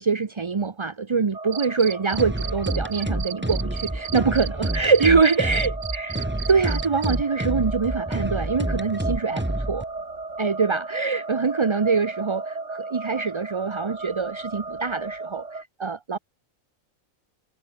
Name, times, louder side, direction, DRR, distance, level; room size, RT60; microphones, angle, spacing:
voice 1, 0.0-9.9 10.4-16.2, right 5 dB, 30° right, 0.6 m, -24 dB
sound 1, 1.3-15.6, right 3 dB, 55° right, 3.4 m, -35 dB
Cricket, 1.5-7.1, right 10 dB, 75° right, 0.4 m, -34 dB
sound 2, 2.1-9.8, right 1 dB, 10° right, 1.6 m, -28 dB
omnidirectional pair, 1.4 m